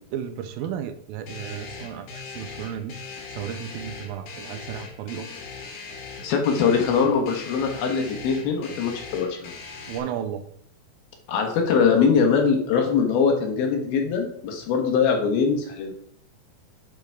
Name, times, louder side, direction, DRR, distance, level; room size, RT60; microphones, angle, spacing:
voice 1, 0.1-3.0 3.3-5.3 9.9-10.4, right 9 dB, 85° right, 9 dB, 2.5 m, -33 dB
sound 1, 1.3-10.0, left 4 dB, 65° left, 2.8 m, -40 dB
voice 2, 6.2-9.5 11.3-15.9, left 6 dB, 85° left, 2 dB, 3.3 m, -22 dB
9.7 x 4.8 x 4.6 m, 0.63 s
omnidirectional pair, 4.2 m